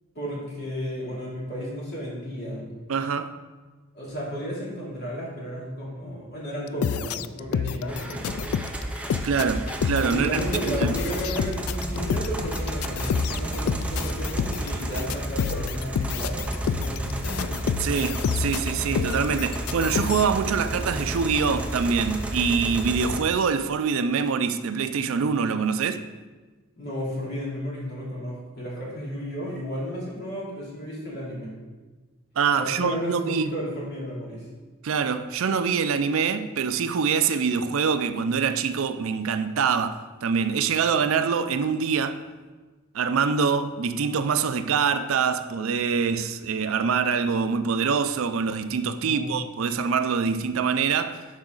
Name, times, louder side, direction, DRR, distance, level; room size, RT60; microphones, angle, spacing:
voice 1, 0.1-2.8 3.9-8.4 10.1-17.5 26.8-31.5 32.5-34.5 49.0-49.4, equal, 50° left, 2.8 m, -33 dB
voice 2, 2.9-3.3 9.2-10.4 10.7-10.9 17.8-26.1 32.4-33.5 34.8-42.2 42.9-51.3, right 6 dB, 65° right, 0.4 m, -25 dB
sound 1, 6.7-20.2, left 7 dB, 80° left, 0.3 m, -29 dB
sound 2, 7.9-23.2, right 1 dB, 5° right, 0.6 m, -31 dB
11.5 x 4.8 x 3.9 m
head